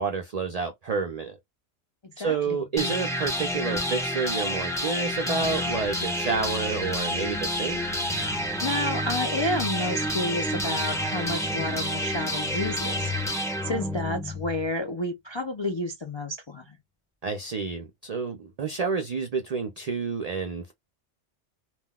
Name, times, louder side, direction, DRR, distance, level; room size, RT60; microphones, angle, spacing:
voice 1, 0.0-1.4 2.2-7.8 17.2-20.7, right 5 dB, 50° right, 0.5 m, -29 dB
voice 2, 2.0-2.6 8.6-16.8, left 1 dB, 45° left, 0.3 m, -31 dB
sound 1, 2.8-14.7, equal, 5° left, 1.1 m, -29 dB
3.7 x 2.3 x 2.2 m
omnidirectional pair, 1.3 m